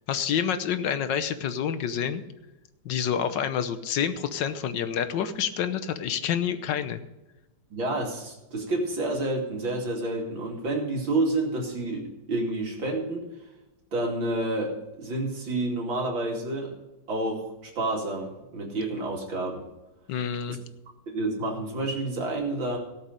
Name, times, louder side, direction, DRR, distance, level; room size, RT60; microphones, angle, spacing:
voice 1, 0.1-2.2 2.8-7.0 20.1-20.6, left 8 dB, 70° left, 11 dB, 1.6 m, -28 dB
voice 2, 7.7-13.3 13.9-16.7 17.1-19.6 21.1-22.8, right 2 dB, 80° right, -1 dB, 3.3 m, -29 dB
17.5 x 7.3 x 5.2 m, 1.0 s
omnidirectional pair, 2.1 m